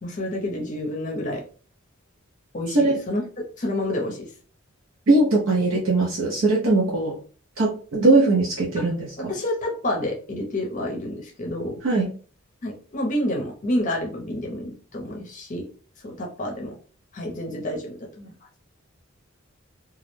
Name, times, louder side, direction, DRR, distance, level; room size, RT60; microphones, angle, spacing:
voice 1, 0.0-1.4 2.5-3.2 3.6-4.3 8.8-8.9 9.2-11.8 12.6-15.6 16.0-16.8 17.1-18.3, left 1 dB, 40° left, 0 dB, 0.5 m, -29 dB
voice 2, 5.1-7.1 7.6-9.3 11.8-12.1, right 2 dB, 80° right, -3 dB, 0.6 m, -20 dB
2.3 x 2.0 x 3.0 m, 0.40 s
head